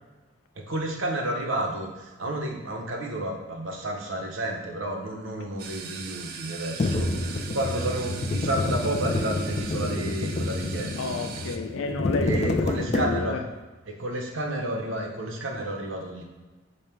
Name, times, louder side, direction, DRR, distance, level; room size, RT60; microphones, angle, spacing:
voice 1, 0.6-11.2 12.2-13.4 13.9-16.2, right 1 dB, 75° right, 0.8 m, -31 dB
sound 1, 5.6-11.6, right 6 dB, 50° right, 0.3 m, -40 dB
sound 2, 6.8-13.5, left 2 dB, 35° left, 0.3 m, -28 dB
voice 2, 11.0-13.4, left 3 dB, 90° left, 0.5 m, -31 dB
5.3 x 2.2 x 4.4 m
head